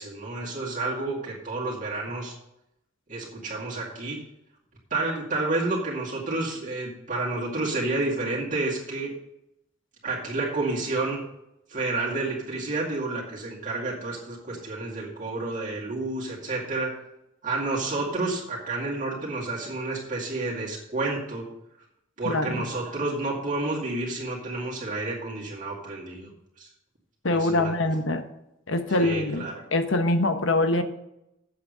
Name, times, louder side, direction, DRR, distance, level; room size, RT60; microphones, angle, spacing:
voice 1, 0.0-2.3 3.1-4.2 4.9-9.1 10.0-11.2 11.7-16.9 17.4-21.5 22.2-26.3 26.6-26.7 27.3-27.7 28.9-29.6, right 2 dB, 40° right, -5 dB, 2.3 m, -30 dB
voice 2, 22.2-22.7 27.2-28.2 28.7-29.4 29.7-30.8, left 2 dB, 70° left, 8 dB, 1.1 m, -24 dB
8.1 x 7.3 x 6.7 m, 0.83 s
head